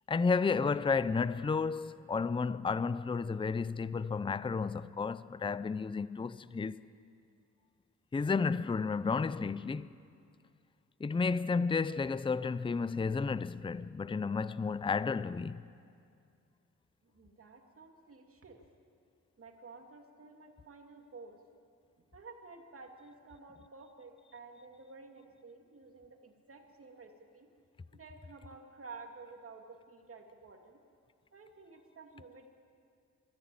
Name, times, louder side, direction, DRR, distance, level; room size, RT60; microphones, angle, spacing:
voice 1, 0.1-6.8 8.1-10.0 11.0-15.6, left 4 dB, 15° left, 0.5 m, -32 dB
voice 2, 17.0-18.6 19.4-21.4 22.1-27.5 27.9-30.8 31.3-32.5, right 4 dB, 50° right, 2.6 m, -52 dB
23.0 x 15.0 x 8.9 m
cardioid pair, 95°, 30 cm